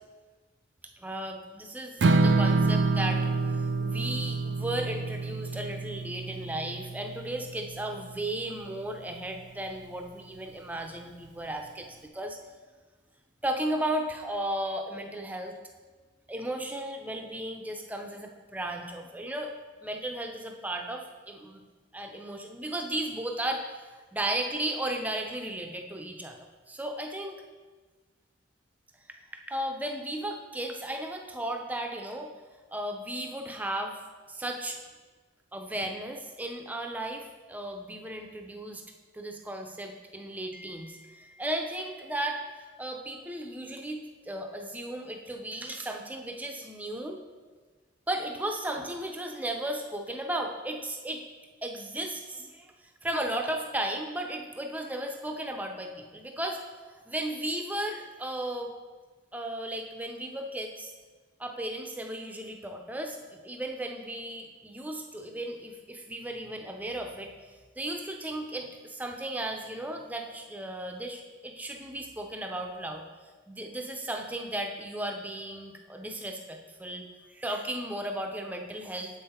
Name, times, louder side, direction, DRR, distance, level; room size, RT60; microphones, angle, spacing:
voice 1, 1.0-11.9 12.1-12.4 13.4-15.5 16.3-19.5 19.8-21.6 21.9-23.8 24.1-26.4 26.7-27.4 29.5-32.3 32.7-34.0 34.3-34.8 35.5-38.8 39.1-47.2 48.1-51.2 51.6-52.7 53.0-56.6 57.1-58.7 59.3-60.9 61.4-67.3 67.8-73.0 73.5-77.1 77.3-79.2, right 1 dB, 10° right, 3 dB, 0.5 m, -35 dB
Strum, 2.0-8.3, right 3 dB, 60° right, 0.4 m, -27 dB
7.4 x 5.6 x 4.3 m, 1.4 s
head